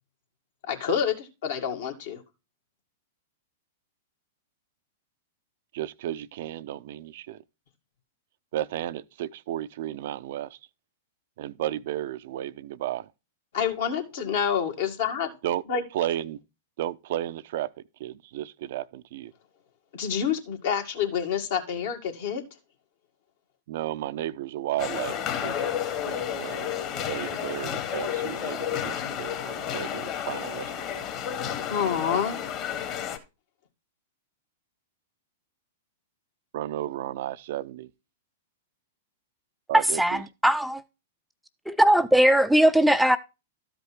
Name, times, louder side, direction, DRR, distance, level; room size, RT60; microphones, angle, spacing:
voice 1, 0.7-2.2 13.5-15.3 15.7-15.8 19.9-22.4 31.7-32.4, left 7 dB, 65° left, 2.3 m, -27 dB
voice 2, 5.7-7.4 8.5-10.6 11.4-13.1 15.4-15.6 15.9-16.4 16.8-17.7 18.0-19.3 23.7-25.7 26.1-26.7 27.1-31.0 36.5-37.9 39.7-40.2, right 13 dB, 60° right, 0.5 m, -33 dB
sound 1, 24.8-33.2, left 9 dB, 40° left, 1.9 m, -31 dB
voice 3, 39.7-40.8 41.7-43.2, right 1 dB, ahead, 0.5 m, -20 dB
13.0 x 5.2 x 4.5 m
hypercardioid pair, 110°, 0 cm